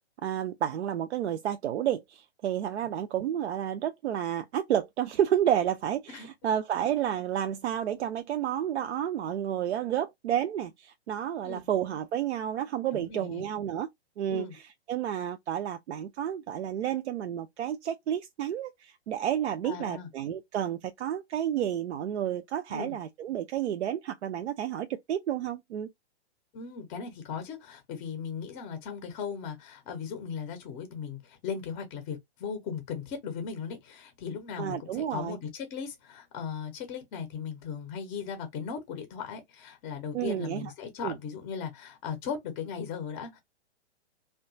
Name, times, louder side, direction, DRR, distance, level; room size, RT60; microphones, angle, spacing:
voice 1, 0.2-13.9 14.2-14.6 14.9-25.9 34.6-35.4 40.1-40.7 41.0-41.1, right 10 dB, 80° right, 0.5 m, -30 dB
voice 2, 6.1-6.5 11.4-11.7 12.9-13.4 14.3-14.5 19.6-20.1 22.7-23.0 26.5-43.4, left 6 dB, 20° left, 0.5 m, -37 dB
2.8 x 2.2 x 2.6 m
hypercardioid pair, 130°, 34 cm